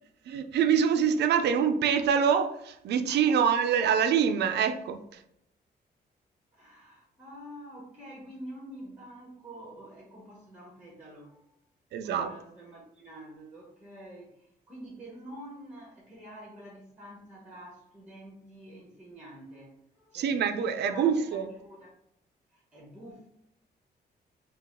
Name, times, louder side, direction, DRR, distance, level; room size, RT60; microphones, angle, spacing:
voice 1, 0.3-5.0 11.9-12.3 20.1-21.5, right 7 dB, 80° right, 0.4 m, -25 dB
voice 2, 3.1-3.4 6.5-11.5 12.0-21.9 22.5-23.3, right 1 dB, 5° right, 0.9 m, -47 dB
4.0 x 2.4 x 3.6 m
wide cardioid pair, 175°, 17 cm